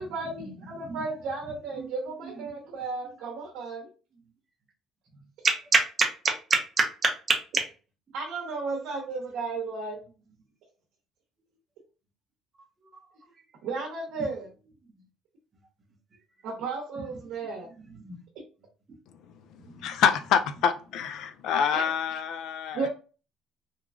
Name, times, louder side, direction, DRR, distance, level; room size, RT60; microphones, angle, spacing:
voice 1, 0.0-3.9 8.1-10.0 13.6-14.5 16.4-17.7 21.7-21.8 22.7-22.9, right 4 dB, 75° right, 0.8 m, -34 dB
voice 2, 5.4-7.6 18.0-18.2 19.7-19.9, right 4 dB, 25° right, 0.7 m, -26 dB
voice 3, 19.8-22.9, left 7 dB, 70° left, 0.3 m, -26 dB
3.0 x 2.2 x 2.4 m
cardioid pair, 130°, 0 cm